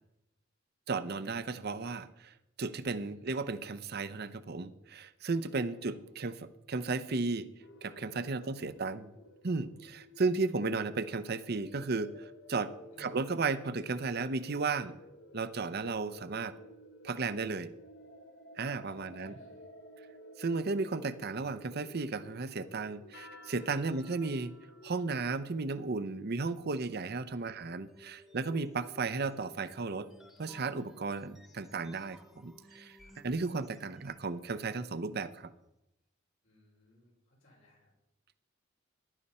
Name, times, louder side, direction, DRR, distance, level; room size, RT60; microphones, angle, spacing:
voice 1, 0.9-7.5 7.8-9.1 9.4-14.9 15.3-16.5 17.0-17.7 18.6-19.3 20.4-24.5 24.8-30.1 30.4-35.5, right 4 dB, 55° right, 13 dB, 0.7 m, -34 dB
voice 2, 3.0-3.5 5.7-6.4 8.3-8.5 12.9-13.2 18.9-19.7 23.8-24.0 27.4-27.7 33.0-33.2 36.4-37.9, left 1 dB, 85° left, -3 dB, 5.9 m, -62 dB
sound 1, 7.6-25.3, left 1 dB, 55° left, 1.1 m, -53 dB
sound 2, 27.2-34.3, left 1 dB, ahead, 1.2 m, -57 dB
15.0 x 11.0 x 4.3 m, 0.90 s
head